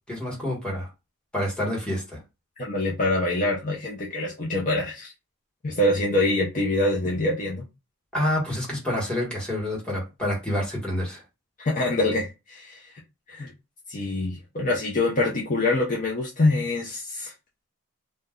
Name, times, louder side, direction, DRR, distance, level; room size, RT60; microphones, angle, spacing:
voice 1, 0.1-0.9 1.3-2.2 8.1-11.2, left 1 dB, 5° left, 1.2 m, -28 dB
voice 2, 2.6-5.1 5.6-7.7 11.6-13.0 13.3-13.5 13.9-17.3, left 2 dB, 35° left, 0.6 m, -25 dB
2.5 x 2.2 x 3.5 m
head